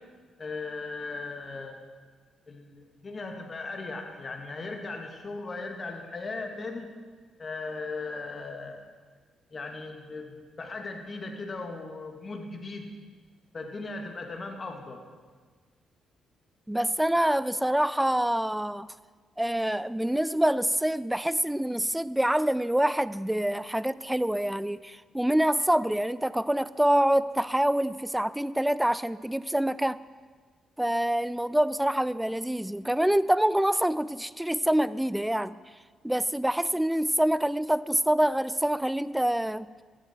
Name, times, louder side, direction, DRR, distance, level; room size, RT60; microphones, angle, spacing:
voice 1, 0.4-1.8 2.5-6.9 7.4-8.8 9.5-12.9 13.5-15.0, left 3 dB, 40° left, 3 dB, 2.2 m, -37 dB
voice 2, 16.7-18.9 19.4-30.0 30.8-35.6 36.0-39.7, right 1 dB, 5° right, 17 dB, 0.4 m, -26 dB
15.5 x 11.5 x 4.6 m, 1.5 s
cardioid pair, 80°, 0 cm